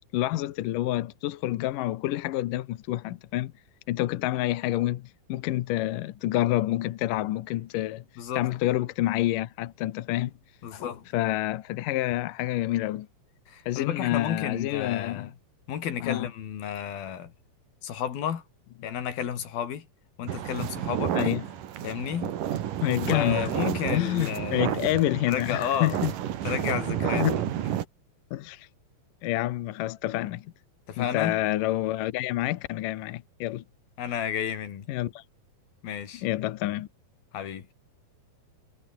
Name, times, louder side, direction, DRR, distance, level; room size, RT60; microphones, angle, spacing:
voice 1, 0.1-3.5 3.9-8.0 8.3-10.3 11.1-13.1 13.7-15.3 16.0-16.3 21.1-21.4 22.8-23.5 23.9-26.1 27.0-27.4 28.3-28.7 29.2-30.5 31.0-33.6 34.9-35.2 36.2-36.9, left 15 dB, 75° left, 2.5 m, -28 dB
voice 2, 10.6-11.1 13.5-15.3 15.7-17.3 17.8-18.4 18.8-19.9 20.2-21.2 21.8-22.3 23.1-24.7 25.3-26.0 26.4-27.3 30.9-31.4 34.0-34.9 35.8-36.2 37.3-37.7, left 9 dB, 90° left, 4.4 m, -32 dB
sound 1, 20.3-27.8, right 11 dB, 70° right, 3.2 m, -31 dB
omnidirectional pair, 4.1 m